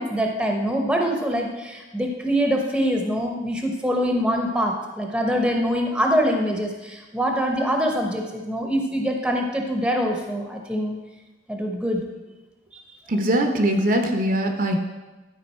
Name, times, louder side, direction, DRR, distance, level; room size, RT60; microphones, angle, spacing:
voice 1, 0.0-11.0 11.5-12.0, equal, 5° right, 1 dB, 0.9 m, -24 dB
voice 2, 13.1-14.8, right 1 dB, 45° right, 4 dB, 0.8 m, -21 dB
12.0 x 5.1 x 4.3 m, 1.2 s
head